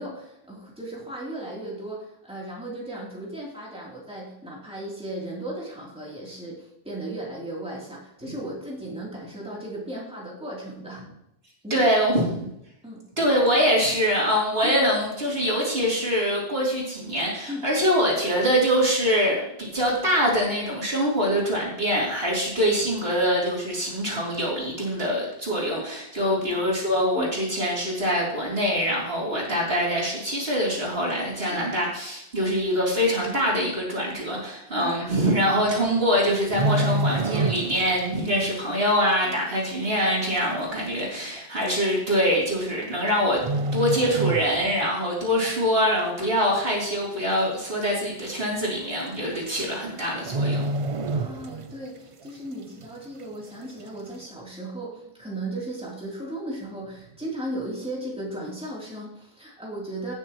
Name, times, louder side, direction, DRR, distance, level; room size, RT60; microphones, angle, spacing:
voice 1, 0.0-11.0 11.6-12.2 12.8-13.0 14.6-14.8 17.5-17.7 19.8-20.0 26.2-26.7 27.2-27.4 29.3-29.5 31.5-31.6 34.8-34.9 39.2-39.4 51.1-60.1, right 1 dB, 5° right, -5 dB, 3.1 m, -36 dB
voice 2, 11.7-12.5 13.2-43.4 43.7-50.7, equal, 70° right, -4 dB, 3.5 m, -24 dB
sound 1, 36.3-38.0 38.3-38.6 39.1-39.2 40.1-40.2 40.4-40.5 41.4-41.6 42.7-43.1 43.4-44.9 45.3-45.5 46.0-46.5 46.9-47.0 47.2-47.3 47.7-47.8 48.8-48.9 49.1-49.4 49.7-49.8 50.2-51.9 52.2-52.3, right 2 dB, 40° right, 0.5 m, -27 dB
17.0 x 6.9 x 3.0 m, 0.80 s
omnidirectional pair, 1.1 m